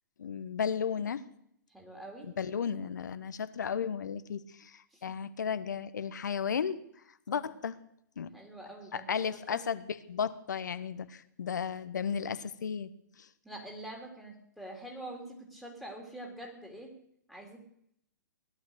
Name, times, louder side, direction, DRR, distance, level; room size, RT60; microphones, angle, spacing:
voice 1, 0.2-1.2 2.4-6.8 7.3-7.7 8.2-8.3 8.9-9.8 10.1-12.9, left 7 dB, 65° left, 14 dB, 1.2 m, -34 dB
voice 2, 1.7-2.3 4.9-5.2 7.3-7.5 8.3-9.6 13.4-16.9 17.3-17.6, right 1 dB, ahead, 0 dB, 3.5 m, -45 dB
17.5 x 11.5 x 6.6 m, 0.72 s
figure-of-eight pair, 120°, 11 cm